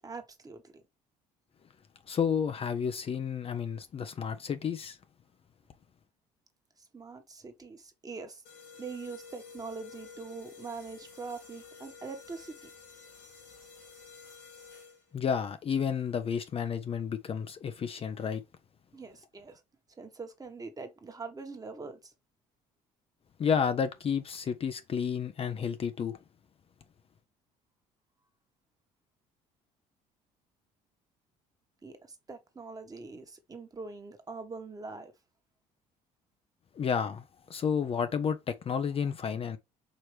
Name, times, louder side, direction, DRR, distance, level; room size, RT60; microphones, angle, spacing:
voice 1, 0.0-0.8 6.8-8.4 8.8-12.7 18.9-19.6 20.0-22.1 31.8-35.1, right 4 dB, 25° right, 1.2 m, -43 dB
voice 2, 2.1-5.0 15.1-18.4 23.4-26.2 36.7-39.6, left 7 dB, 40° left, 0.5 m, -31 dB
sound 1, 8.4-15.2, left 5 dB, 75° left, 2.5 m, -51 dB
4.8 x 3.0 x 3.1 m
supercardioid pair, 75°, 15 cm